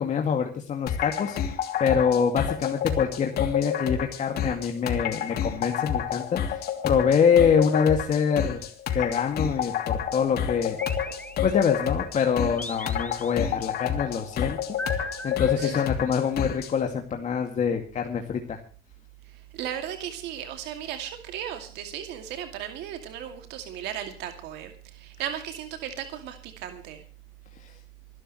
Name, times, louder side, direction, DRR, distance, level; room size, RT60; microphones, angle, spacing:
voice 1, 0.0-8.7 8.9-10.8 11.4-14.6 14.9-18.6 27.6-27.8, left 7 dB, 45° left, 3 dB, 2.2 m, -25 dB
sound 1, 0.9-16.7, left 8 dB, 65° left, 2.8 m, -29 dB
sound 2, 10.8-11.9 12.6-13.7 14.8-16.3, left 2 dB, 10° left, 1.5 m, -39 dB
voice 2, 19.5-27.0, right 10 dB, 90° right, 6 dB, 2.5 m, -36 dB
26.5 x 12.0 x 3.1 m, 0.39 s
cardioid pair, 110°, 17 cm